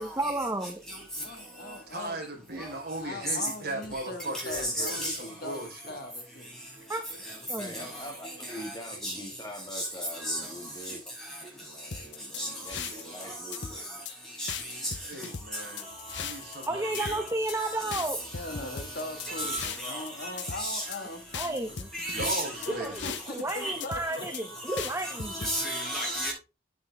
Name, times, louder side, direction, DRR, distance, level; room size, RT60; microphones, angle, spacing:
voice 1, 0.0-0.8 6.9-7.0 7.5-7.7 16.7-18.2 21.3-21.9 22.8-22.9 23.3-25.3, right 2 dB, 15° right, 1.0 m, -32 dB
voice 2, 1.2-2.2 3.0-6.5 18.3-21.6 22.7-24.5, left 2 dB, 55° left, 1.8 m, -40 dB
voice 3, 1.9-6.0 15.0-17.2 22.2-23.2 24.1-24.3, right 2 dB, 60° right, 4.2 m, -38 dB
voice 4, 4.6-5.2 9.0-9.1 9.8-9.9 10.2-10.4 12.4-12.5 14.4-14.5 14.8-14.9 17.0-17.2 19.3-20.8 21.9-22.4 23.6-23.8 24.7-26.3, equal, 5° left, 6.9 m, -32 dB
voice 5, 7.6-11.0 11.4-13.9, equal, 25° left, 2.1 m, -44 dB
sound 1, 11.9-13.2 13.5-14.1 14.5-16.7 16.9-17.6 17.9-20.1 20.4-21.0 21.3-23.5 23.8-24.4 24.8-25.5, left 7 dB, 80° left, 0.9 m, -38 dB
9.7 x 9.6 x 3.5 m
head